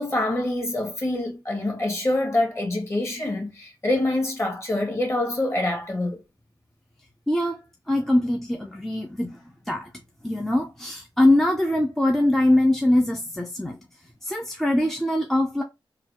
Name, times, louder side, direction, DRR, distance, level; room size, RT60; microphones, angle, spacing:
voice 1, 0.0-6.2, left 1 dB, 30° left, 1.6 m, -25 dB
voice 2, 7.3-7.6 7.9-9.4 9.7-9.9 10.2-13.8 14.2-15.6, left 1 dB, 5° left, 0.6 m, -22 dB
3.9 x 2.4 x 2.9 m
wide cardioid pair, 95°, 9 cm